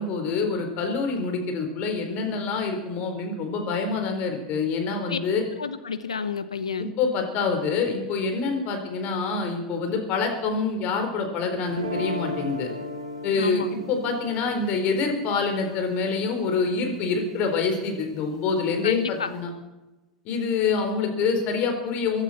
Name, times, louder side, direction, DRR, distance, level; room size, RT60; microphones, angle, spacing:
voice 1, 0.0-5.4 6.8-12.7 13.2-19.5 20.2-22.2, left 4 dB, 50° left, 4 dB, 4.2 m, -26 dB
voice 2, 5.6-6.9 13.3-13.7 18.8-19.3, left 6 dB, 85° left, 11 dB, 1.1 m, -30 dB
sound 1, 11.7-17.8, left 1 dB, 85° right, 2.5 m, -37 dB
23.5 x 12.0 x 4.4 m, 1.1 s
hypercardioid pair, 85°, 3 cm